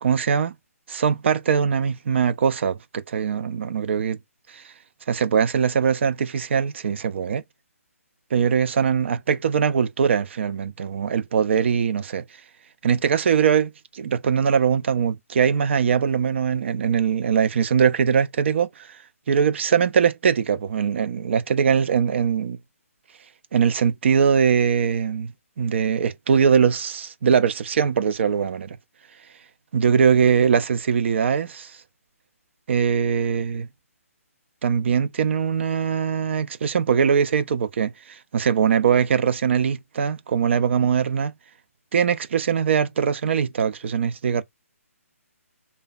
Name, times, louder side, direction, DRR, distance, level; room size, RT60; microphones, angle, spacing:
voice 1, 0.0-0.5 0.9-4.2 4.5-4.6 5.1-7.4 8.3-12.2 12.8-19.0 19.3-22.6 23.5-28.8 29.7-31.8 32.7-33.7 34.6-41.3 41.9-44.4, right 7 dB, 50° right, 0.4 m, -21 dB
3.2 x 2.1 x 2.4 m
figure-of-eight pair, 140°, 8 cm